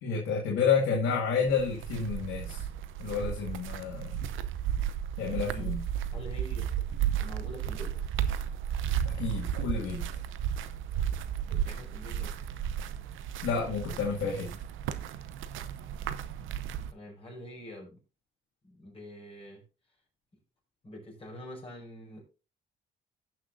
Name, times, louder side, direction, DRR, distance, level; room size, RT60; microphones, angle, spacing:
voice 1, 0.0-2.7 3.0-4.3 5.2-5.8 9.1-10.0 13.4-14.5, left 5 dB, 85° left, -1 dB, 2.0 m, -30 dB
sound 1, 1.5-16.9, right 9 dB, 85° right, 0.7 m, -34 dB
voice 2, 5.4-5.8 6.1-6.9 7.2-8.0 11.0-11.1 11.4-12.4 16.9-18.0 18.6-19.6 20.8-22.2, equal, 30° left, -2 dB, 5.3 m, -45 dB
17.0 x 6.1 x 2.6 m, 0.32 s
cardioid pair, 90°, 20 cm